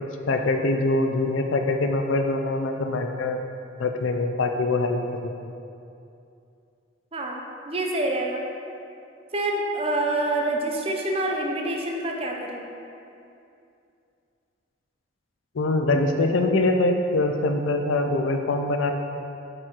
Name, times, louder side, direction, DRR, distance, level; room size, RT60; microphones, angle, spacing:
voice 1, 0.0-3.4 3.8-5.3 15.5-18.9, left 2 dB, 90° left, 5 dB, 0.5 m, -24 dB
voice 2, 7.1-8.4 9.3-12.6, right 1 dB, 30° right, 1 dB, 0.7 m, -27 dB
7.5 x 5.0 x 4.4 m, 2.6 s
head